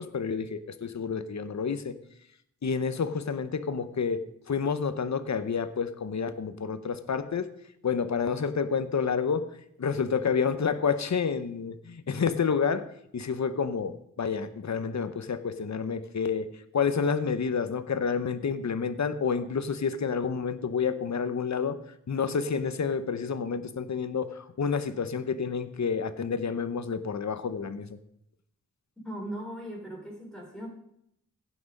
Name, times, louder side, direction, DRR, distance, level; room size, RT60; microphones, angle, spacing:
voice 1, 0.0-2.0 2.6-7.5 7.8-9.5 9.8-12.9 13.1-16.5 16.7-21.8 22.1-28.0, left 6 dB, 55° left, 12 dB, 0.8 m, -29 dB
voice 2, 29.0-30.7, right 1 dB, ahead, -2 dB, 4.6 m, -38 dB
16.0 x 6.1 x 5.3 m, 0.74 s
wide cardioid pair, 90°, 34 cm